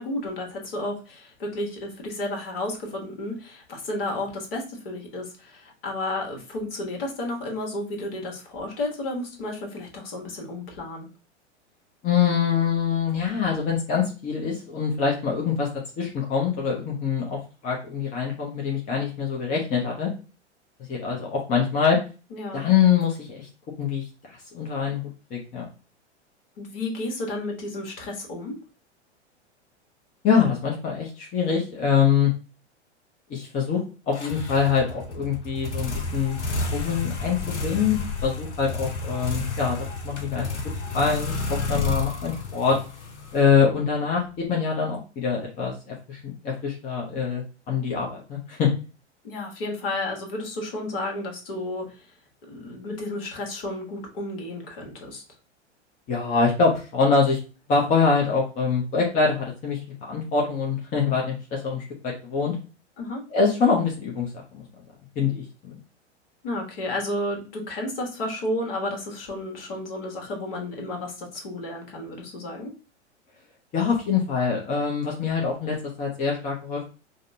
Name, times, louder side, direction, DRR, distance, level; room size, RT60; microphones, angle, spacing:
voice 1, 0.0-11.1 22.3-22.6 26.6-28.6 49.2-52.0 52.5-55.2 63.0-63.2 66.4-72.7, left 1 dB, 55° left, 1 dB, 1.4 m, -32 dB
voice 2, 12.0-15.7 16.0-20.1 20.9-22.0 22.5-23.5 23.8-24.0 24.5-25.6 30.2-32.3 33.3-36.4 36.7-40.5 40.9-42.8 43.3-48.7 56.1-57.4 57.7-62.5 63.3-64.6 65.2-65.7 73.7-76.8, left 6 dB, 25° left, -2 dB, 0.8 m, -24 dB
sound 1, 34.1-43.9, left 3 dB, 75° left, 0.8 m, -31 dB
5.0 x 2.1 x 2.7 m, 0.34 s
figure-of-eight pair, 95°, 35 cm